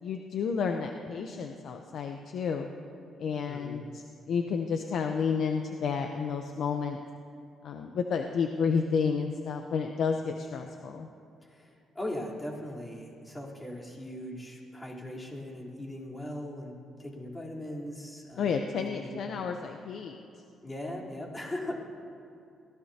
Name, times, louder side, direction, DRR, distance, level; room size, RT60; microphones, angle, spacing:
voice 1, 0.0-2.7 3.2-7.0 7.6-11.1 18.4-20.2, left 6 dB, 65° left, 4 dB, 0.8 m, -31 dB
voice 2, 3.5-3.9 11.4-19.3 20.6-21.7, left 1 dB, 15° left, -5 dB, 3.7 m, -39 dB
22.0 x 16.5 x 2.9 m, 2.6 s
cardioid pair, 90°, 0 cm